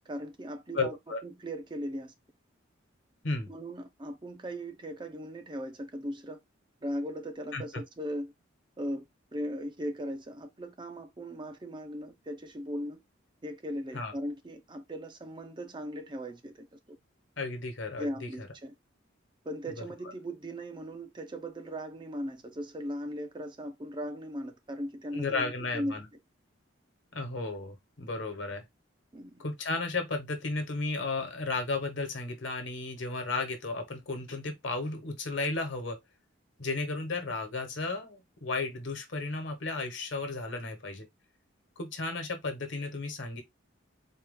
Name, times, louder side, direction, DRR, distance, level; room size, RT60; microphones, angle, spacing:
voice 1, 0.1-1.0 1.2-2.1 3.5-6.4 6.8-8.3 8.8-9.0 9.3-13.0 13.4-17.0 18.0-18.7 19.4-26.0 29.1-29.4, equal, 25° right, 0.5 m, -38 dB
voice 2, 0.7-1.2 3.2-3.5 7.5-7.6 13.9-14.1 17.4-18.5 19.8-19.9 25.1-26.0 27.1-28.6 29.4-36.0 36.6-41.1 41.8-43.4, left 3 dB, 65° left, 1.2 m, -34 dB
4.2 x 2.4 x 3.6 m
head